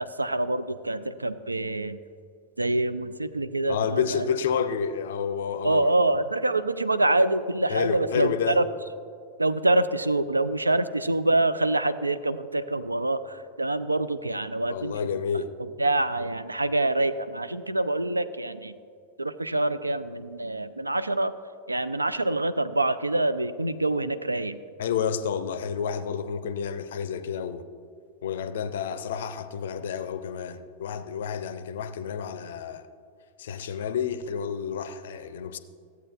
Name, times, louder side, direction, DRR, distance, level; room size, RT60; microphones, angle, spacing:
voice 1, 0.0-2.0 2.6-4.3 5.6-8.6 9.4-15.2 15.8-18.8 19.2-21.3 21.7-24.6, right 2 dB, 80° right, 13 dB, 0.3 m, -26 dB
voice 2, 3.7-5.9 7.7-8.6 14.7-15.5 24.8-27.6 28.2-32.9 33.4-35.6, left 7 dB, 60° left, 12 dB, 0.4 m, -30 dB
14.0 x 8.1 x 2.4 m, 2.3 s
figure-of-eight pair, 90°, 0 cm